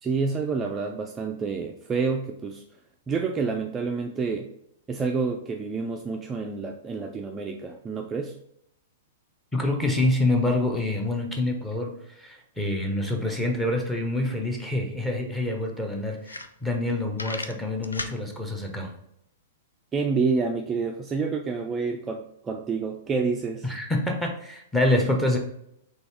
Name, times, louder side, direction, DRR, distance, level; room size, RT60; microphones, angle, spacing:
voice 1, 0.0-2.6 3.1-4.5 4.9-8.4 19.9-23.7, right 4 dB, 20° right, 2 dB, 0.4 m, -28 dB
voice 2, 9.5-18.9 23.6-25.4, left 1 dB, 5° left, 1 dB, 1.0 m, -26 dB
sound 1, 15.2-15.3 15.8-15.9 16.2-16.9 17.1-18.2, left 3 dB, 85° left, 0.4 m, -35 dB
4.0 x 3.5 x 3.4 m, 0.76 s
figure-of-eight pair, 110°, 0 cm